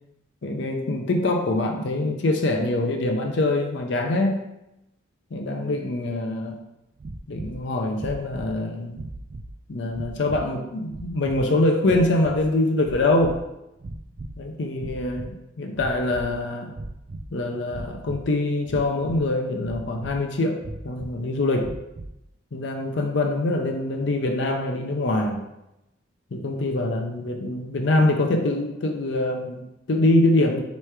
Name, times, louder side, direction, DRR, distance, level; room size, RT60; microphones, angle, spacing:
voice 1, 0.4-4.5 5.3-6.6 7.3-9.0 9.7-13.4 14.4-16.7 17.3-21.8 22.5-25.4 26.3-30.6, left 2 dB, 65° left, 3 dB, 0.5 m, -24 dB
sound 1, 7.0-7.6 7.9-8.6 8.9-9.5 9.9-10.5 10.9-11.4 11.8-12.5 12.8-13.5 13.8-14.4 14.7-15.3 15.7-16.4 16.7-17.3 17.7-18.2 18.7-19.3 19.6-20.2 20.6-21.1 21.6-22.2, right 2 dB, 40° right, 0.3 m, -37 dB
3.2 x 3.1 x 4.7 m, 0.89 s
head